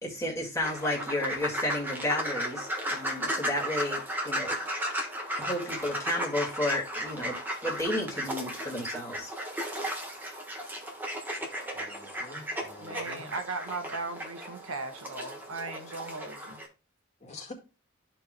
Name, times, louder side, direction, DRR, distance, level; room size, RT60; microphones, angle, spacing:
voice 1, 0.0-4.6 5.4-9.3, left 1 dB, 15° left, 2.0 m, -32 dB
sound 1, 0.6-16.7, equal, 10° right, 1.3 m, -35 dB
voice 2, 11.7-13.3 17.2-17.5, left 3 dB, 35° left, 1.9 m, -46 dB
voice 3, 12.8-16.6, right 3 dB, 80° right, 1.4 m, -37 dB
13.5 x 4.7 x 2.2 m
head